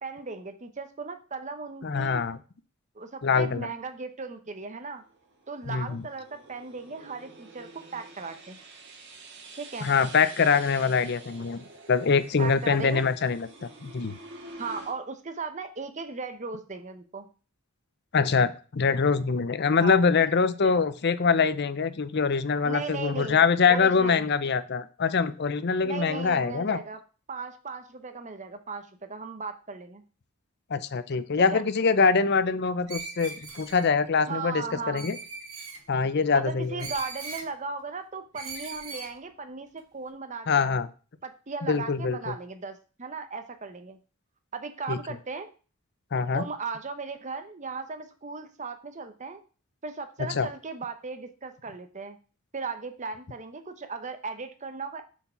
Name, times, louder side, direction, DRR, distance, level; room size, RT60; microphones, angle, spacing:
voice 1, 0.0-2.2 2.9-5.0 5.5-8.6 9.5-9.9 12.4-13.1 14.6-17.3 19.8-20.0 20.6-20.7 22.6-23.4 23.7-24.2 25.8-27.0 27.3-30.0 31.4-31.6 34.3-35.1 36.3-40.7 41.2-44.0 44.5-45.5 46.3-49.4 49.8-52.2 52.5-55.0, right 4 dB, 35° right, 8 dB, 0.9 m, -37 dB
voice 2, 1.8-2.4 3.2-3.7 5.7-6.0 9.8-14.1 18.1-26.8 30.7-35.2 35.9-36.8 40.5-40.9 41.7-42.3 44.9-45.0 46.1-46.5 50.2-50.5, left 5 dB, 50° left, 14 dB, 0.6 m, -24 dB
sound 1, 4.8-14.9, right 3 dB, 60° right, 1.6 m, -48 dB
Screech, 32.9-33.9 35.0-35.8 36.8-37.5 38.3-39.1, right 4 dB, 85° right, 2.1 m, -39 dB
7.0 x 4.6 x 5.7 m, 0.37 s
head